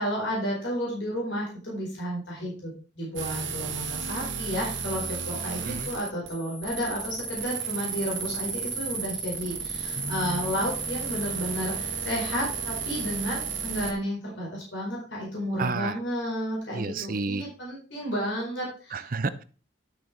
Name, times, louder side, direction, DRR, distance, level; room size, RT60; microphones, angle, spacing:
voice 1, 0.0-19.0, equal, 75° left, -3 dB, 4.5 m, -32 dB
sound 1, 3.2-13.9, right 6 dB, 80° right, 1.8 m, -33 dB
voice 2, 9.9-10.6 15.6-16.0 16.7-17.4 18.9-19.4, right 3 dB, 50° right, 14 dB, 0.7 m, -31 dB
11.5 x 6.7 x 4.5 m, 0.38 s
head